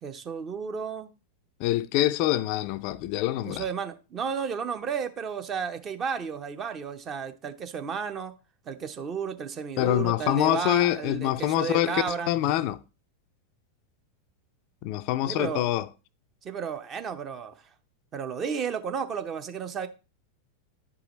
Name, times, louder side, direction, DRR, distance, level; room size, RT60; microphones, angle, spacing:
voice 1, 0.0-1.1 3.4-8.3 8.7-12.3 15.3-15.6 16.4-17.6 18.1-19.9, right 6 dB, 25° right, 0.7 m, -33 dB
voice 2, 1.6-3.6 9.8-12.8 14.8-15.9, left 14 dB, 45° left, 0.4 m, -25 dB
10.5 x 4.9 x 3.0 m
figure-of-eight pair, 90°, 0 cm